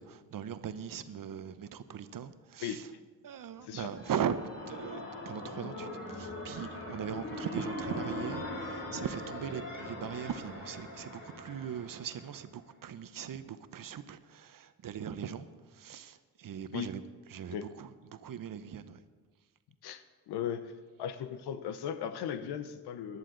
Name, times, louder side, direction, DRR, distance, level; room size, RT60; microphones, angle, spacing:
voice 1, 0.0-2.8 3.2-15.5 15.8-17.0 17.3-19.0, right 8 dB, 60° right, 12 dB, 0.9 m, -39 dB
sound 1, 3.5-12.4, left 2 dB, 60° left, 4.8 m, -41 dB
voice 2, 19.8-20.7 21.0-23.2, left 9 dB, 85° left, 11 dB, 0.9 m, -37 dB
17.0 x 11.0 x 3.9 m, 1.4 s
supercardioid pair, 60°, 38 cm